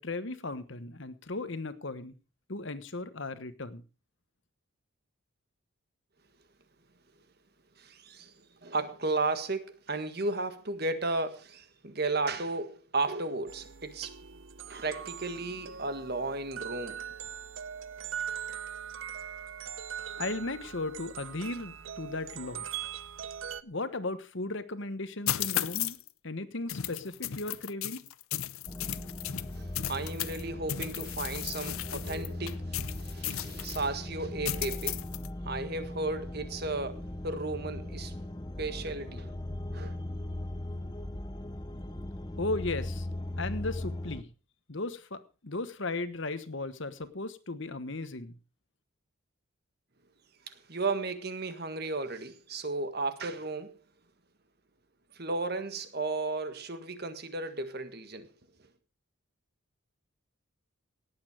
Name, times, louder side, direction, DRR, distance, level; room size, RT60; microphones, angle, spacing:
voice 1, 0.0-2.1 2.5-3.8 20.2-22.7 23.6-26.0 26.2-28.0 42.4-43.1 43.4-44.3 44.7-48.3, left 2 dB, 60° left, 1.2 m, -36 dB
voice 2, 7.8-8.3 8.6-14.1 14.7-17.1 29.5-35.0 35.4-38.1 38.6-39.3 39.7-40.0 50.5-53.8 55.1-58.3, right 3 dB, 50° right, 1.6 m, -34 dB
sound 1, 13.5-23.6, right 8 dB, 65° right, 0.7 m, -41 dB
sound 2, 25.3-26.1 26.7-30.4 30.7-33.8 34.4-35.3, left 12 dB, 80° left, 0.7 m, -35 dB
sound 3, 28.7-44.2, left 1 dB, 20° left, 0.8 m, -39 dB
18.0 x 8.7 x 4.9 m
head